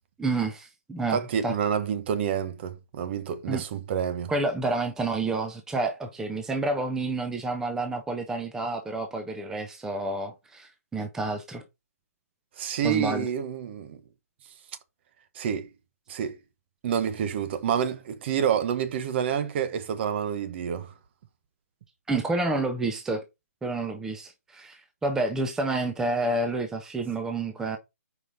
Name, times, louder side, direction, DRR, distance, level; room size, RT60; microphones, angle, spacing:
voice 1, 0.2-1.6 3.5-3.6 4.3-11.6 12.8-13.3 22.1-23.2 23.6-27.8, right 2 dB, 5° right, 0.7 m, -29 dB
voice 2, 1.1-4.3 12.6-14.0 15.3-15.7 16.1-16.4 16.8-20.9, right 8 dB, 45° right, 1.0 m, -28 dB
5.0 x 4.9 x 4.0 m
hypercardioid pair, 145°, 9 cm